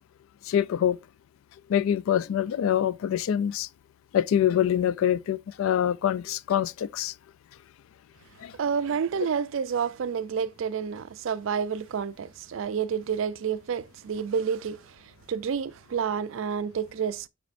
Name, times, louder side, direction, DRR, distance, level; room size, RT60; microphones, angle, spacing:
voice 1, 0.5-1.0 1.7-3.7 4.1-7.1 8.4-8.5, left 10 dB, 80° left, 0.3 m, -25 dB
voice 2, 8.6-17.3, right 7 dB, 70° right, 0.4 m, -29 dB
7.2 x 5.2 x 2.5 m
head